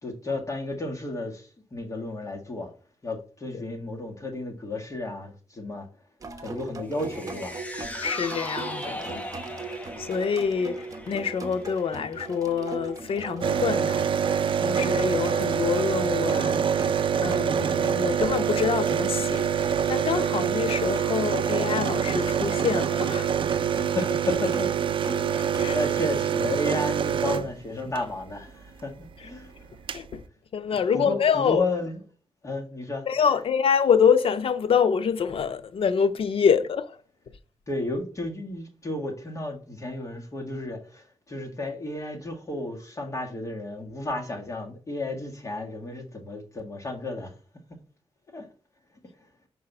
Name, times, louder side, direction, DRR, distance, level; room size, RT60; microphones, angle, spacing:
voice 1, 0.0-2.7 3.0-5.9 6.4-7.5 23.8-25.3 25.7-29.7 30.9-32.0 32.4-33.5 37.7-47.3 48.3-48.5, left 2 dB, 30° left, 1.8 m, -33 dB
sound 1, 6.2-25.7, right 4 dB, 35° right, 0.9 m, -38 dB
sound 2, 6.9-13.3 13.7-13.8, left 1 dB, 15° left, 0.8 m, -40 dB
voice 2, 8.0-9.2 9.7-16.8 17.2-19.5 19.9-23.4 25.3-25.8 29.9-30.2 30.5-31.6 33.1-37.0, left 6 dB, 70° left, 0.7 m, -26 dB
sound 3, 13.4-28.0 29.3-29.4 29.6-30.1, right 8 dB, 60° right, 0.4 m, -25 dB
5.5 x 4.8 x 5.5 m
wide cardioid pair, 150°, 10 cm